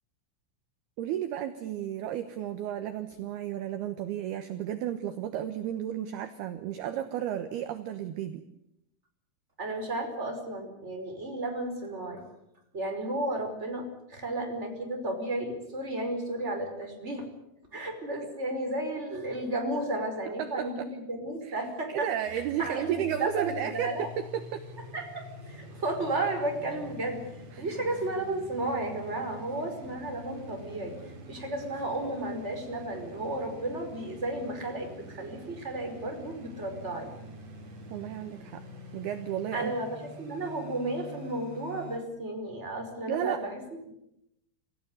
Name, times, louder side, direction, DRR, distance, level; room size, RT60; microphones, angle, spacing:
voice 1, 1.0-8.4 20.4-20.9 21.4-21.6 21.9-23.9 24.3-24.6 27.5-27.7 37.9-38.6 38.9-39.7 43.1-43.4, right 11 dB, 70° right, 9 dB, 2.5 m, -33 dB
voice 2, 9.6-12.2 12.7-17.3 17.7-22.1 22.6-24.1 24.9-27.2 27.6-31.0 31.3-37.1 39.5-39.9 40.2-43.6, right 2 dB, 15° right, 3 dB, 4.9 m, -33 dB
sound 1, 22.2-42.0, right 1 dB, 35° right, 4.0 m, -46 dB
27.5 x 16.0 x 9.7 m, 0.81 s
omnidirectional pair, 5.8 m